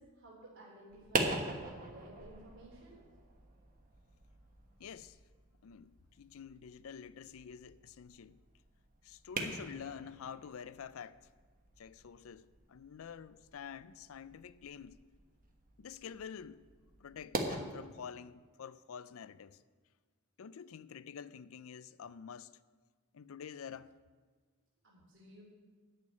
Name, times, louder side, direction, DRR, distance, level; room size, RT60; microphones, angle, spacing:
voice 1, 0.0-3.0 24.8-25.4, right 1 dB, 60° right, 3.2 m, -55 dB
sound 1, 0.9-17.6, right 2 dB, 40° right, 1.3 m, -43 dB
voice 2, 4.8-5.2 5.6-8.4 9.0-11.3 11.8-15.0 15.8-16.6 17.0-19.6 20.4-22.5 23.1-24.0, left 7 dB, 70° left, 0.4 m, -48 dB
11.0 x 6.6 x 8.8 m
head